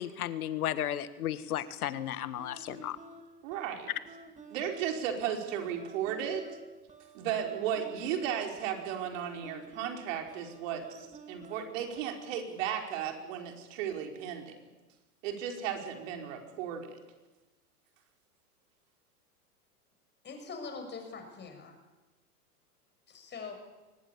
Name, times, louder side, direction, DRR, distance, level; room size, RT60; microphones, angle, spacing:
voice 1, 0.0-3.0, left 11 dB, 65° left, 14 dB, 1.7 m, -34 dB
sound 1, 2.4-12.5, right 2 dB, 15° right, 2.3 m, -52 dB
voice 2, 3.4-3.9 4.5-6.5 7.1-14.5 15.2-17.0, right 9 dB, 55° right, 3 dB, 5.0 m, -35 dB
voice 3, 20.2-21.8 23.1-23.5, left 4 dB, 20° left, 5 dB, 6.6 m, -43 dB
24.0 x 19.5 x 8.5 m, 1.1 s
hypercardioid pair, 100°, 46 cm